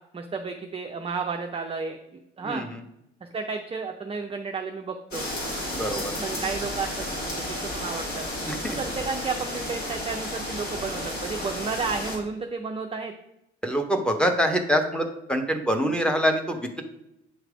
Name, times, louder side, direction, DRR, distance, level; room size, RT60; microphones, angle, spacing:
voice 1, 0.1-2.7 3.3-5.3 6.2-8.2 8.8-13.1, right 4 dB, 15° right, 4 dB, 0.5 m, -32 dB
voice 2, 2.4-2.8 5.8-6.1 8.5-8.8 13.6-16.8, equal, 5° left, 4 dB, 0.9 m, -25 dB
sound 1, 5.1-12.2, left 1 dB, 50° left, 2.3 m, -32 dB
8.6 x 3.2 x 4.8 m, 0.85 s
figure-of-eight pair, 55°, 36 cm